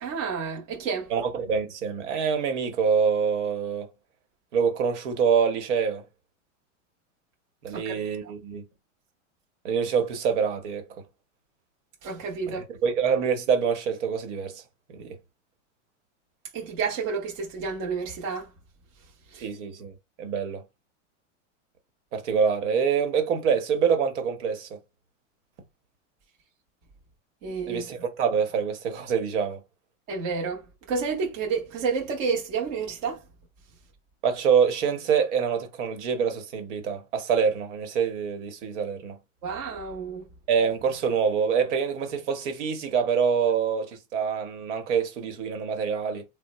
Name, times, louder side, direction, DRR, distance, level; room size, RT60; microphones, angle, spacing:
voice 1, 0.0-1.1 7.7-7.9 12.0-12.6 16.5-18.4 19.3-19.4 27.4-27.8 30.1-30.6 30.9-33.2 39.4-40.2, right 5 dB, 30° right, 0.6 m, -30 dB
voice 2, 1.1-3.9 4.5-6.0 7.6-8.6 9.6-10.9 12.5-14.6 14.9-15.2 19.4-19.9 20.2-20.6 22.1-24.8 27.6-29.6 34.2-39.2 40.5-46.2, right 6 dB, 65° right, 1.0 m, -25 dB
3.6 x 2.0 x 2.9 m
supercardioid pair, 170°, 38 cm